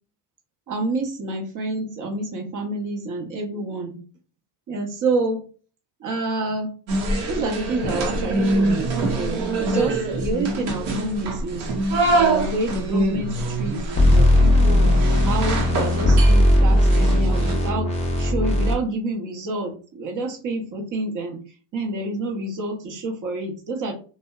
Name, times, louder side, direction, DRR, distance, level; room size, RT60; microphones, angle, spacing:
voice 1, 0.7-4.0 4.7-5.4 6.0-6.7 7.3-11.7 12.1-13.8 14.1-14.9 15.3-21.4 21.7-23.9, right 2 dB, 45° right, 3 dB, 0.7 m, -28 dB
sound 1, 6.9-17.5, right 2 dB, 85° right, 0.8 m, -25 dB
sound 2, 13.9-18.7, left 1 dB, 15° left, 0.4 m, -17 dB
2.6 x 2.1 x 2.2 m, 0.39 s
cardioid pair, 125°, 45 cm